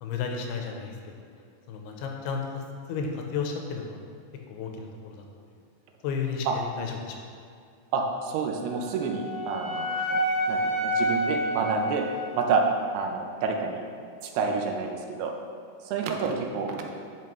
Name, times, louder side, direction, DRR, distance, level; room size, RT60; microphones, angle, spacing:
voice 1, 0.0-0.9 1.7-2.6 2.9-4.0 4.5-5.2 6.0-7.2, left 5 dB, 85° left, 2 dB, 2.7 m, -32 dB
voice 2, 7.9-12.1 12.4-12.6 12.9-13.8 14.2-15.3 15.8-16.8, right 5 dB, 80° right, 2 dB, 2.7 m, -29 dB
Wind instrument woodwind instrument, 8.6-12.8, equal, 60° right, 2.2 m, -29 dB
10.5 x 5.4 x 3.2 m, 2.3 s
omnidirectional pair, 4.7 m